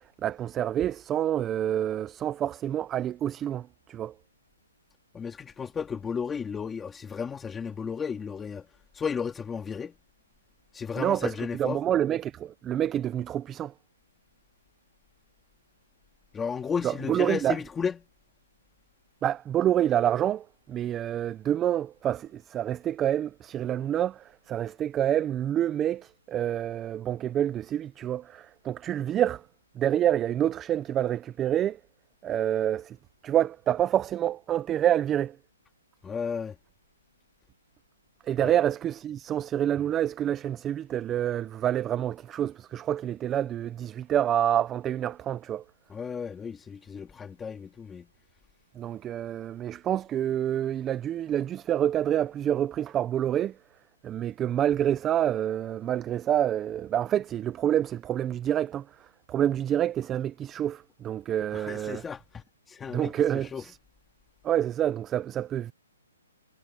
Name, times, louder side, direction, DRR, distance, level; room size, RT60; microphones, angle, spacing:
voice 1, 0.0-4.1 11.0-13.7 16.8-17.6 19.2-29.5 29.8-31.8 32.2-33.0 33.2-35.4 38.2-45.6 48.8-53.6 54.0-62.0 62.9-63.8 64.4-65.7, right 11 dB, 10° right, 0.4 m, -27 dB
voice 2, 5.1-8.7 8.9-9.9 10.7-11.8 16.3-18.0 36.0-36.6 38.4-38.5 45.9-48.1 61.5-62.4 62.7-63.1 63.5-63.6, left 6 dB, 5° left, 2.3 m, -33 dB
hypercardioid pair, 170°, 0 cm